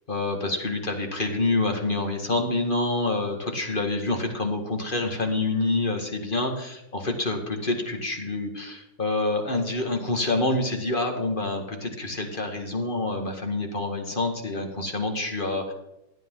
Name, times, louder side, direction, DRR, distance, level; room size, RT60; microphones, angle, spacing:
voice 1, 0.1-15.7, left 2 dB, 25° left, 4 dB, 1.9 m, -27 dB
16.5 x 12.0 x 3.8 m, 0.88 s
omnidirectional pair, 2.3 m